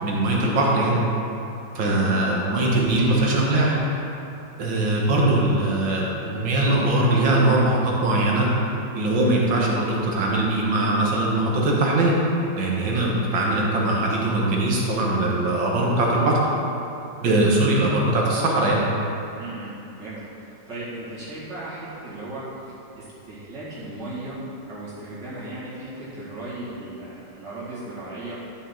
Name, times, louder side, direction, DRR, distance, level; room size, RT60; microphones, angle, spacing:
voice 1, 0.0-1.0 1.8-3.8 4.6-8.5 8.9-12.2 12.6-16.4 17.2-18.8, right 2 dB, 90° right, -3 dB, 2.2 m, -21 dB
voice 2, 1.8-2.3 2.9-3.2 18.2-18.4 19.4-24.4 24.7-28.4, right 2 dB, 70° right, -10 dB, 2.9 m, -37 dB
12.0 x 6.7 x 3.9 m, 2.7 s
omnidirectional pair, 2.0 m